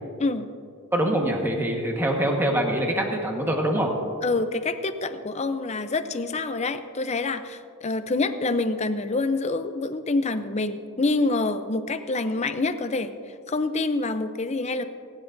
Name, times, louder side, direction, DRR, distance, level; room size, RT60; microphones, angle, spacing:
voice 1, 0.9-3.9, right 1 dB, 10° right, 0 dB, 1.4 m, -24 dB
voice 2, 4.2-13.1 13.5-14.9, left 3 dB, 30° left, 10 dB, 0.6 m, -26 dB
28.0 x 10.0 x 2.7 m, 2.4 s
head